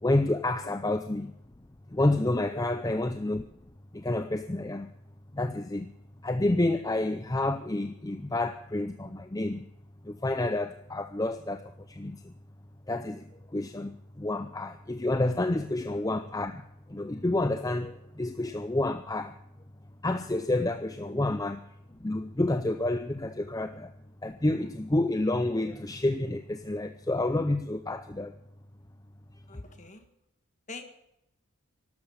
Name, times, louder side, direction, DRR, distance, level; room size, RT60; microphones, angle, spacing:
voice 1, 0.0-1.3 1.9-3.5 3.9-4.9 5.3-5.9 6.2-9.7 10.0-12.3 12.9-19.4 20.0-21.7 21.9-23.9 24.2-28.3, left 2 dB, 15° left, 0.5 m, -29 dB
voice 2, 2.5-2.8 21.1-21.2 29.5-30.0 30.7-30.9, left 3 dB, 35° left, 1.7 m, -44 dB
13.0 x 12.5 x 8.7 m
head